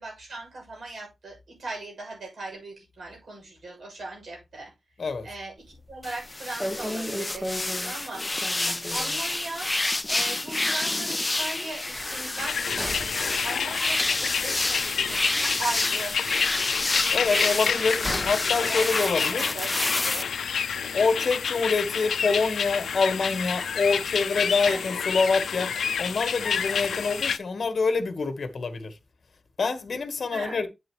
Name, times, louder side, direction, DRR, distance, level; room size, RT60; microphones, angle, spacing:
voice 1, 0.0-4.7 5.2-8.3 8.6-9.7 10.1-16.2 16.9-18.1 18.3-20.3 24.6-24.8 30.3-30.7, right 2 dB, 55° right, 6.8 m, -39 dB
shower door, 5.7-6.0 6.2-6.3 6.6-9.3 9.7-9.8 10.1-10.2 11.9-15.8 16.1-18.5 18.8-18.9, equal, 5° right, 1.3 m, -36 dB
sound 1, 6.0-20.2, left 2 dB, 15° left, 0.4 m, -29 dB
sound 2, 12.4-27.4, left 7 dB, 85° left, 0.5 m, -29 dB
voice 2, 17.1-19.5 20.9-25.7 26.0-29.0 29.6-30.7, left 4 dB, 45° left, 1.3 m, -26 dB
8.8 x 8.0 x 3.1 m
wide cardioid pair, 180°, 0 cm